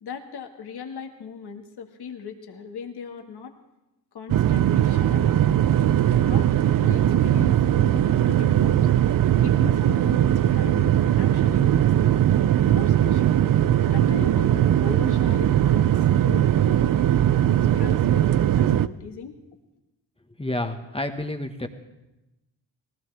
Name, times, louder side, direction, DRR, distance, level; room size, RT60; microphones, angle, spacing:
voice 1, 0.0-3.5 4.1-5.7 6.2-8.9 9.4-12.2 12.6-13.4 13.9-16.9 17.7-19.4, left 6 dB, 55° left, 4 dB, 1.9 m, -38 dB
sound 1, 4.3-18.9, right 11 dB, 45° right, 0.6 m, -20 dB
voice 2, 20.4-21.7, left 1 dB, 10° left, 5 dB, 1.5 m, -29 dB
19.5 x 16.5 x 3.5 m, 0.97 s
supercardioid pair, 50°, 46 cm